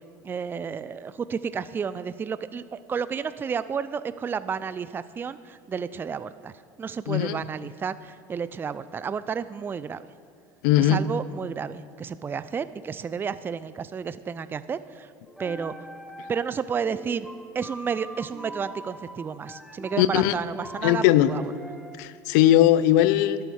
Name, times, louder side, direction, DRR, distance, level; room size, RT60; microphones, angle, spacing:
voice 1, 0.2-6.5 6.8-10.1 10.8-15.1 15.4-15.7 16.3-17.3 17.5-21.5, right 6 dB, 20° right, 14 dB, 0.4 m, -31 dB
voice 2, 7.1-7.4 10.6-11.0 20.0-20.3 20.8-21.3 22.0-23.4, left 13 dB, 75° left, 16 dB, 0.5 m, -19 dB
sound 1, 15.3-16.6 16.9-22.0, right 1 dB, ahead, 1.0 m, -42 dB
11.5 x 7.9 x 6.3 m, 2.2 s
supercardioid pair, 100°, 10 cm